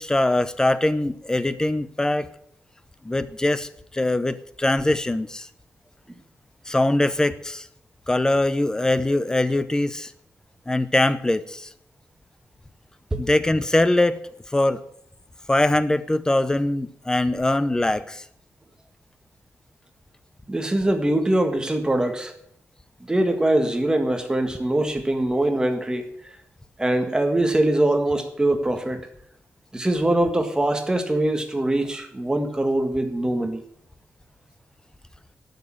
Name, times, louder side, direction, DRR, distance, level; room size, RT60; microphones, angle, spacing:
voice 1, 0.0-2.3 3.0-5.5 6.7-7.7 8.1-10.1 10.7-11.7 13.2-14.2 14.5-14.8 15.5-18.2, left 1 dB, 15° left, 14 dB, 0.8 m, -22 dB
voice 2, 20.5-22.3 23.1-26.1 26.8-29.1 29.7-33.6, right 1 dB, 15° right, 5 dB, 1.7 m, -22 dB
12.0 x 6.6 x 8.8 m, 0.71 s
wide cardioid pair, 115°, 5 cm